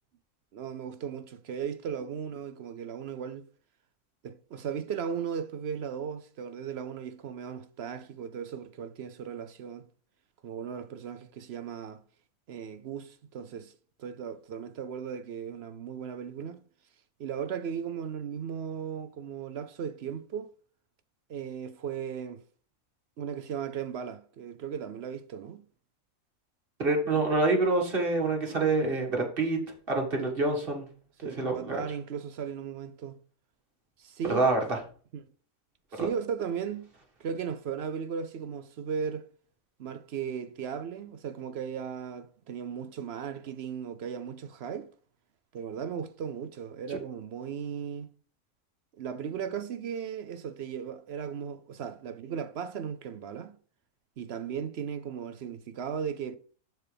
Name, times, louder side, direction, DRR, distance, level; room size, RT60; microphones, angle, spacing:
voice 1, 0.5-3.5 4.2-9.9 10.4-12.0 12.5-13.7 14.0-16.6 17.2-20.5 21.3-22.4 23.2-25.6 31.2-33.2 34.0-34.5 35.1-35.2 35.9-36.9 37.2-39.2 39.8-44.9 45.5-48.1 48.9-53.5 54.2-56.4, right 7 dB, 65° right, 0.7 m, -36 dB
voice 2, 26.8-29.6 29.9-30.9 31.2-31.8 34.2-34.8 36.0-36.1 46.9-47.0, right 2 dB, 40° right, 1.9 m, -27 dB
12.5 x 4.6 x 3.4 m
omnidirectional pair, 1.6 m